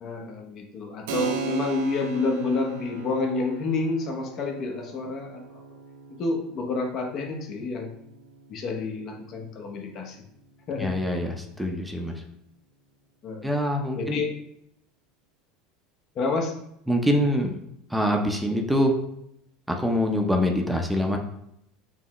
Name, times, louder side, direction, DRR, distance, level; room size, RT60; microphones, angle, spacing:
voice 1, 0.0-5.6 6.1-8.0 8.5-10.2 10.7-11.0 13.2-13.5 14.0-14.3 16.2-16.5, left 3 dB, 50° left, 2 dB, 0.8 m, -29 dB
Keyboard (musical), 1.1-11.3, right 7 dB, 80° right, 0.5 m, -39 dB
voice 2, 10.8-12.2 13.4-14.2 16.9-17.6 17.9-19.0 19.7-21.2, equal, 5° right, 2 dB, 0.6 m, -24 dB
5.4 x 2.1 x 3.0 m, 0.75 s
hypercardioid pair, 90°, 0 cm